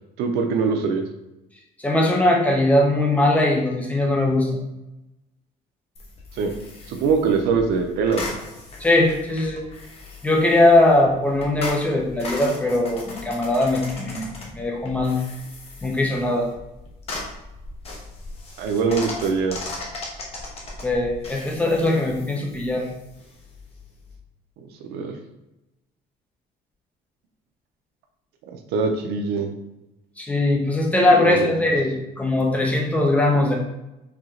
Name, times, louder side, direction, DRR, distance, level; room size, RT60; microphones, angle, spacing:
voice 1, 0.2-1.0 6.3-6.5 6.9-8.4 18.6-19.6 24.9-25.2 28.7-29.5 31.2-31.5, right 5 dB, 85° right, 4 dB, 0.7 m, -22 dB
voice 2, 1.8-4.5 8.8-9.6 10.2-15.2 15.8-16.5 20.8-22.9 30.2-33.6, left 1 dB, 10° left, 0 dB, 0.8 m, -20 dB
sound 1, 5.9-24.2, left 2 dB, 40° left, 1.0 m, -38 dB
4.7 x 2.8 x 3.8 m, 0.93 s
cardioid pair, 145°, 16 cm